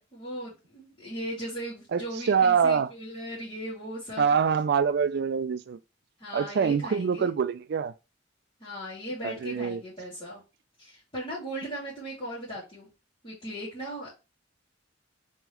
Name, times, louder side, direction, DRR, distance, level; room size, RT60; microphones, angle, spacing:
voice 1, 0.0-4.4 6.2-7.4 8.6-10.4 10.8-12.9 13.2-14.1, equal, 25° left, 2.0 m, -38 dB
voice 2, 1.9-2.9 4.2-5.8 6.3-7.9 9.2-9.8, right 6 dB, 55° right, 0.3 m, -25 dB
3.5 x 3.4 x 3.0 m
head